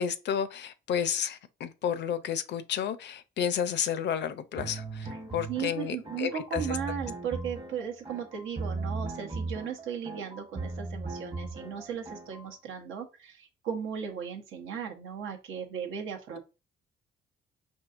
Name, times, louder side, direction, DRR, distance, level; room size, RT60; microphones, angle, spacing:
voice 1, 0.0-6.8, left 8 dB, 65° left, 0.5 m, -31 dB
sound 1, 4.6-12.5, right 3 dB, 25° right, 0.9 m, -38 dB
voice 2, 5.5-16.4, right 7 dB, 80° right, 0.8 m, -36 dB
4.5 x 2.7 x 2.4 m
cardioid pair, 90°, 20 cm